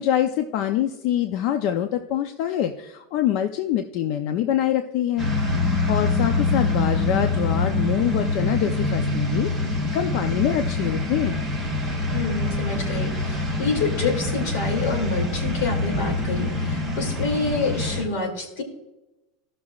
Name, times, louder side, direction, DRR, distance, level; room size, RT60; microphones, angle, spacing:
voice 1, 0.0-5.3 5.9-11.4, left 11 dB, 50° left, 8 dB, 0.5 m, -25 dB
sound 1, 5.2-18.0, left 2 dB, 10° left, 1.6 m, -25 dB
voice 2, 12.1-18.6, left 3 dB, 80° left, 4 dB, 2.5 m, -27 dB
16.0 x 6.1 x 2.4 m, 0.98 s
supercardioid pair, 170°, 0 cm